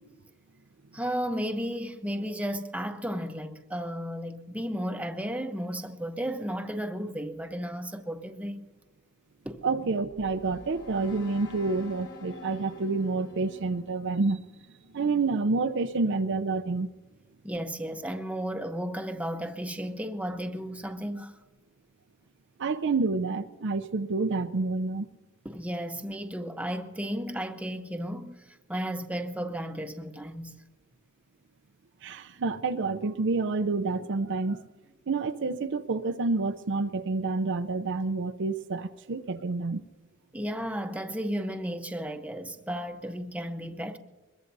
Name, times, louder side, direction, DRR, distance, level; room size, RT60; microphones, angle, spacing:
voice 1, 0.9-8.7 9.4-9.6 17.4-21.3 25.4-30.5 40.3-44.0, equal, 5° right, 0.8 m, -34 dB
voice 2, 9.6-14.4 14.9-16.9 22.6-25.1 32.0-34.6 35.1-39.8, right 3 dB, 55° right, 0.6 m, -28 dB
sound 1, 9.9-15.0, left 3 dB, 60° left, 4.9 m, -49 dB
22.0 x 22.0 x 2.7 m
head